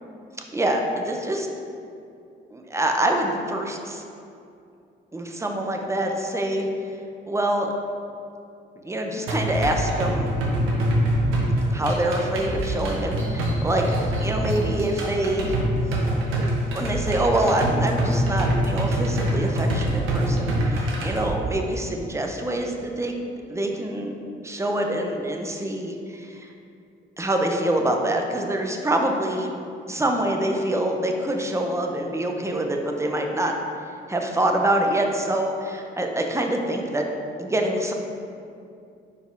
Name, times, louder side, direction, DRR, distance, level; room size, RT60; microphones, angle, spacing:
voice 1, 0.5-1.5 2.5-4.0 5.1-6.7 7.3-7.7 8.8-10.3 11.5-15.6 16.3-23.1 23.5-24.1 24.4-26.5 27.2-29.5 29.9-33.5 34.1-37.0 37.4-37.9, right 1 dB, 15° right, 2 dB, 0.7 m, -25 dB
sound 1, 9.3-21.3, right 1 dB, 85° right, 1.2 m, -24 dB
4.9 x 4.2 x 5.2 m, 2.5 s
cardioid pair, 90°, 20 cm